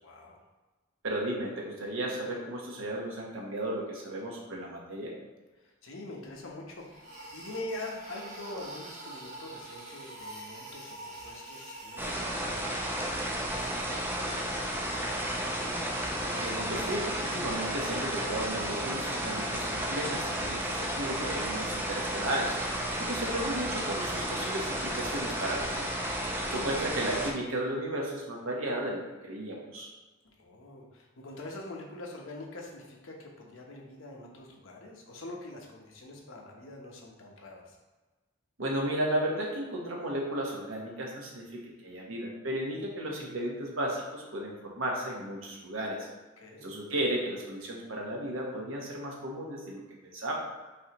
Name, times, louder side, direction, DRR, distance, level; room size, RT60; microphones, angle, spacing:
voice 1, 0.0-0.4 5.6-15.5 26.3-26.5 30.2-37.8 46.4-46.7, left 2 dB, 80° left, 0 dB, 0.9 m, -45 dB
voice 2, 1.0-5.1 16.3-22.6 23.0-25.9 26.5-29.9 38.6-46.1 46.6-50.3, right 1 dB, 90° right, -1 dB, 1.1 m, -34 dB
sound 1, 6.3-6.4 6.8-12.1, right 1 dB, 40° right, 1.1 m, -45 dB
sound 2, 12.0-27.3, right 1 dB, 10° right, 0.5 m, -32 dB
5.4 x 3.3 x 2.9 m, 1.2 s
head